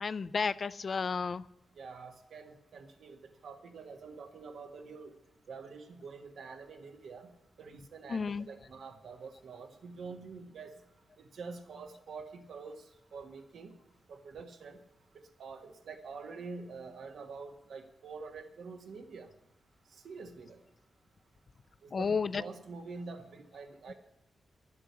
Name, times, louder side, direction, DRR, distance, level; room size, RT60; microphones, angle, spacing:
voice 1, 0.0-1.4 8.1-8.5 21.9-22.4, left 5 dB, 40° left, 17 dB, 0.3 m, -32 dB
voice 2, 1.8-3.2 3.4-5.1 5.5-7.3 7.6-8.2 8.5-10.7 11.3-12.7 13.1-13.7 14.1-14.8 15.4-19.3 20.0-20.6 21.8-22.1 22.4-23.9, right 4 dB, 75° right, 5 dB, 1.5 m, -46 dB
11.5 x 7.6 x 8.2 m, 0.87 s
wide cardioid pair, 165°, 0 cm